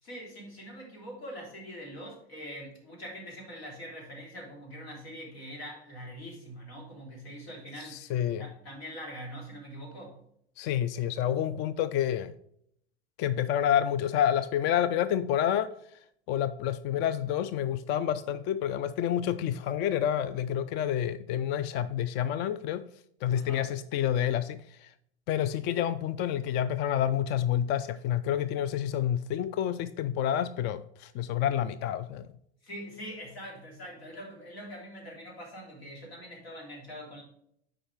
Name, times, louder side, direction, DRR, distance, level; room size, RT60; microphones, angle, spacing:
voice 1, 0.0-8.1 8.4-10.2 23.3-23.7 32.6-37.2, equal, 75° left, 3.3 m, -43 dB
voice 2, 7.9-8.5 10.6-12.3 13.2-15.7 16.3-22.8 23.2-24.9 25.3-32.3, left 10 dB, 35° left, 0.4 m, -29 dB
8.6 x 5.0 x 3.5 m
hypercardioid pair, 90°, 31 cm